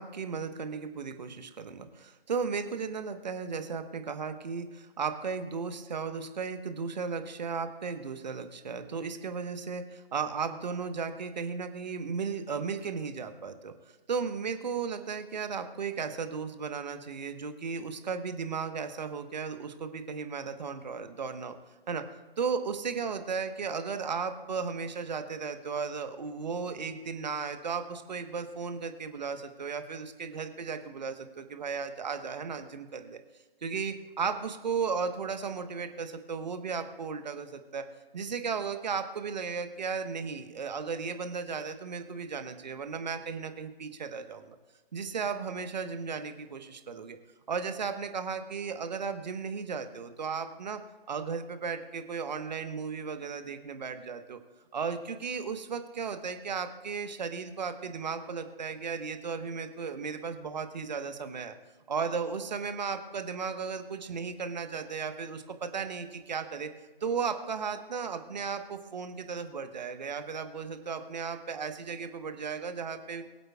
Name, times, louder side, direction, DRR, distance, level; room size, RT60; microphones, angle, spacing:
voice 1, 0.0-13.7 14.1-21.5 21.9-22.0 22.4-33.2 33.6-37.9 38.1-44.5 44.9-47.2 47.5-50.8 51.1-54.4 54.7-61.5 61.9-66.7 67.0-73.2, right 5 dB, 45° right, 8 dB, 1.2 m, -35 dB
23.5 x 7.9 x 2.4 m, 1.2 s
figure-of-eight pair, 145°, 30 cm